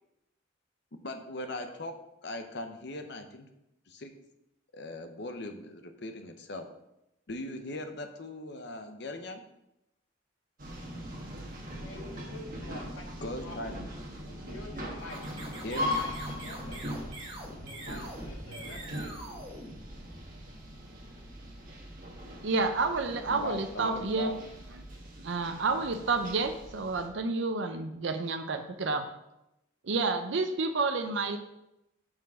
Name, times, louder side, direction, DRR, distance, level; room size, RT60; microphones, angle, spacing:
voice 1, 1.0-1.9 2.2-3.5 3.9-4.1 4.7-6.7 7.3-9.4 13.2-13.7 15.6-16.0 23.3-24.3, left 1 dB, 55° left, 7 dB, 0.8 m, -39 dB
sound 1, 10.6-27.1, left 1 dB, 45° right, 1.4 m, -40 dB
voice 2, 11.8-13.6 14.3-16.9 17.6-19.4, left 1 dB, 75° left, 1 dB, 1.5 m, -48 dB
sound 2, 15.0-20.5, right 1 dB, 25° right, 1.4 m, -45 dB
voice 3, 22.4-24.3 25.2-29.0 29.9-31.4, right 3 dB, 65° right, 7 dB, 0.6 m, -30 dB
6.0 x 4.6 x 6.1 m, 0.88 s
head